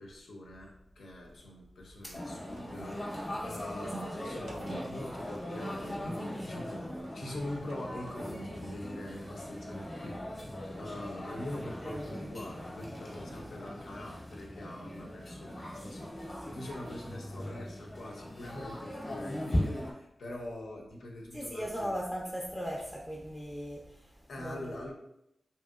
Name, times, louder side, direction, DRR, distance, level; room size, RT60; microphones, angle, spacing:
voice 1, 0.0-22.1 24.3-24.9, left 1 dB, 90° left, -1 dB, 0.6 m, -44 dB
sound 1, 2.1-19.9, left 1 dB, 35° left, 0.8 m, -39 dB
sound 2, 2.4-8.9, right 2 dB, 90° right, 0.5 m, -49 dB
voice 2, 11.8-12.2 21.3-24.1 24.4-24.8, equal, 5° left, -4 dB, 0.5 m, -38 dB
2.8 x 2.8 x 2.3 m, 0.80 s
cardioid pair, 60°, 0 cm